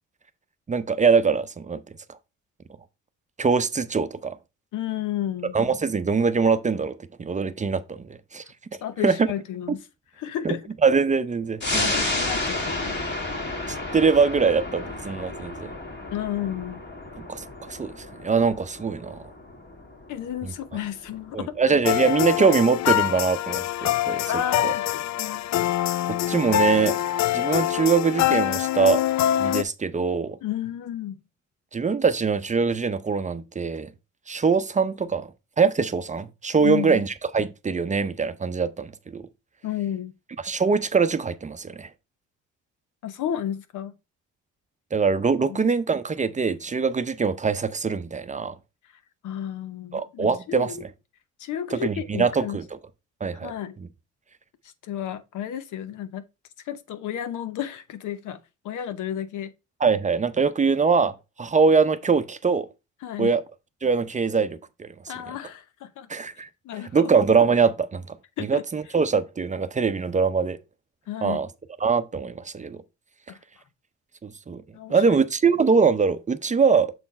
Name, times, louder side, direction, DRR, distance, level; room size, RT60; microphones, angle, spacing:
voice 1, 0.7-1.8 3.4-4.4 5.5-8.0 8.3-8.4 9.0-9.2 10.4-10.5 10.8-12.0 13.7-15.7 17.3-19.2 20.4-20.5 21.3-24.3 24.6-24.7 26.1-27.0 27.3-29.0 29.4-30.4 31.7-33.9 34.3-35.3 35.6-39.2 40.4-41.9 44.9-48.5 49.9-50.7 51.7-52.6 53.2-53.5 59.8-62.7 63.2-63.4 63.8-64.9 66.1-66.5 66.9-68.2 68.5-70.6 71.2-71.5 71.8-72.8 74.2-74.6 74.9-76.9, right 5 dB, 25° right, 0.6 m, -23 dB
voice 2, 4.7-5.6 8.8-9.8 10.2-10.7 11.6-13.0 16.1-16.8 20.1-21.8 24.3-25.5 30.4-31.2 36.6-37.0 39.6-40.1 43.0-43.9 45.5-45.6 49.2-50.8 51.4-52.6 53.4-53.8 54.8-56.2 56.6-58.4 58.6-59.5 63.0-63.3 65.1-66.1 66.6-67.1 68.4-68.6 71.1-71.4 73.3-73.4 74.7-75.2, left 10 dB, 80° left, 0.9 m, -32 dB
sound 1, 11.6-22.6 23.0-23.1, left 2 dB, 35° left, 2.0 m, -32 dB
sound 2, 21.8-29.6, left 13 dB, 65° left, 0.4 m, -24 dB
6.8 x 4.3 x 4.2 m
cardioid pair, 90°, 30 cm